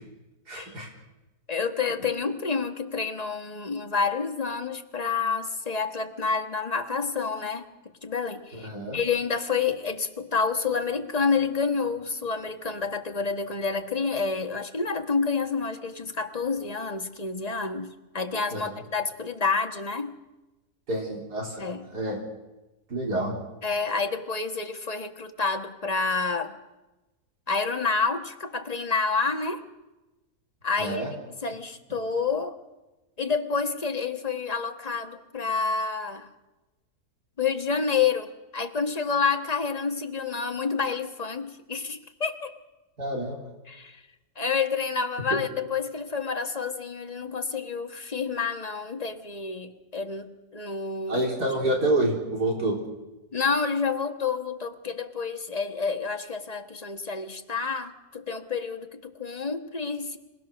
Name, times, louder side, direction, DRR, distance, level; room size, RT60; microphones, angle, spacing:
voice 1, 0.5-0.9 8.5-9.0 18.5-18.6 20.9-21.6 21.9-22.2 22.9-23.4 30.8-31.1 43.0-43.5 51.1-52.7, right 1 dB, 80° right, -1 dB, 4.4 m, -27 dB
voice 2, 1.5-7.7 8.0-20.2 21.6-21.9 23.6-26.6 27.5-29.6 30.6-31.0 31.4-32.6 33.2-36.3 37.4-42.5 43.7-44.0 44.4-51.2 53.3-60.2, left 5 dB, 25° left, 5 dB, 1.4 m, -29 dB
26.5 x 18.0 x 6.4 m, 1.1 s
omnidirectional pair, 1.7 m